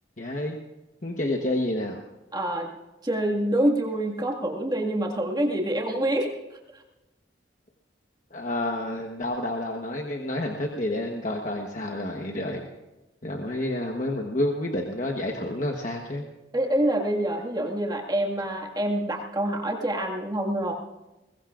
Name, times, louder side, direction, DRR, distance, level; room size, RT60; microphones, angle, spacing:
voice 1, 0.2-0.6 1.0-2.0 8.3-12.7 13.2-16.2, left 1 dB, 45° left, 1 dB, 1.2 m, -29 dB
voice 2, 2.3-2.7 3.0-6.3 6.7-6.8 16.5-20.7, right 1 dB, 20° right, 0 dB, 1.9 m, -26 dB
21.5 x 21.0 x 2.5 m, 1.0 s
head